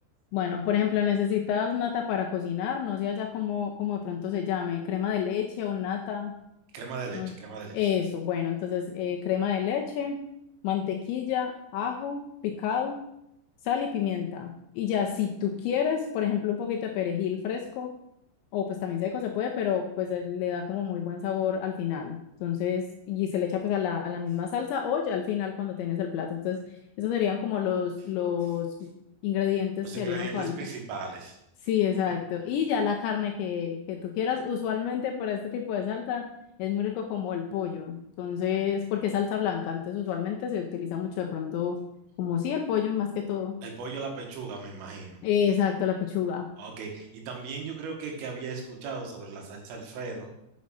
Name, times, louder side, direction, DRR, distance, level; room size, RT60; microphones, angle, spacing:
voice 1, 0.3-6.3 7.1-7.3 7.7-10.2 10.6-13.0 13.6-17.9 18.5-26.6 27.0-28.9 29.2-30.5 31.6-36.2 36.6-41.8 42.2-43.6 45.2-46.5, left 8 dB, 85° left, 2 dB, 2.7 m, -29 dB
voice 2, 6.7-7.8 29.8-31.4 43.6-45.2 46.6-50.3, right 4 dB, 75° right, 2 dB, 4.0 m, -37 dB
7.3 x 6.3 x 5.6 m, 0.82 s
omnidirectional pair, 5.9 m